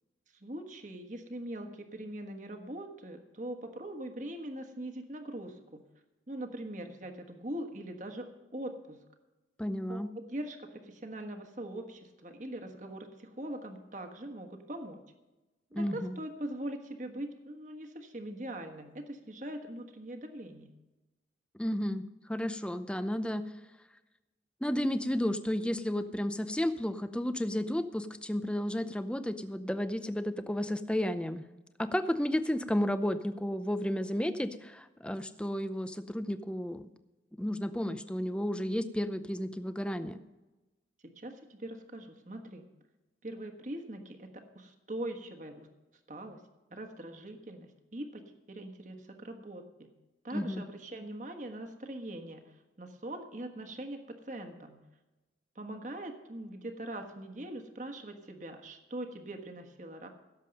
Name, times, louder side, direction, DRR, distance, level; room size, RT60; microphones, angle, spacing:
voice 1, 0.3-5.8 6.3-9.0 9.9-15.0 15.7-20.7 41.0-42.7 43.2-45.7 46.1-46.4 46.7-48.2 48.5-49.9 50.2-54.8 55.5-60.1, right 1 dB, 45° right, 5 dB, 1.4 m, -42 dB
voice 2, 9.6-10.1 15.7-16.2 21.5-22.0 22.3-23.5 24.6-31.5 31.8-36.9 37.4-40.2 50.3-50.6, left 1 dB, 5° left, 11 dB, 0.6 m, -32 dB
16.5 x 7.5 x 5.3 m, 1.1 s
head